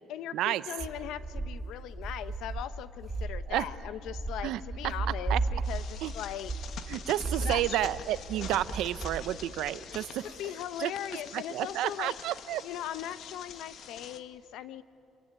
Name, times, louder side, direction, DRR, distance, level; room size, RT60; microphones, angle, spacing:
voice 1, 0.1-6.5 7.4-7.8 10.2-12.2 12.6-14.8, left 11 dB, 80° left, 14 dB, 0.8 m, -39 dB
sound 1, 0.8-9.2, right 3 dB, 15° right, 1.8 m, -35 dB
sound 2, 5.6-14.2, left 7 dB, 55° left, 1.3 m, -46 dB
voice 2, 6.9-10.3 10.8-10.9 11.3-12.6, right 13 dB, 85° right, 14 dB, 0.8 m, -30 dB
27.5 x 22.0 x 9.7 m, 2.7 s
cardioid pair, 160°, 0 cm